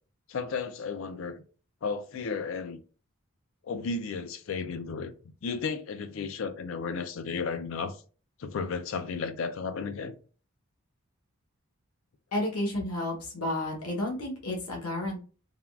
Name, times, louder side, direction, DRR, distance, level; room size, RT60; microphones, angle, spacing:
voice 1, 0.3-1.4 1.8-2.8 3.7-5.1 5.4-8.0 8.4-10.1, left 5 dB, 60° left, 0.3 m, -33 dB
voice 2, 12.3-15.2, left 1 dB, 90° left, 0.9 m, -31 dB
3.4 x 2.2 x 2.3 m
head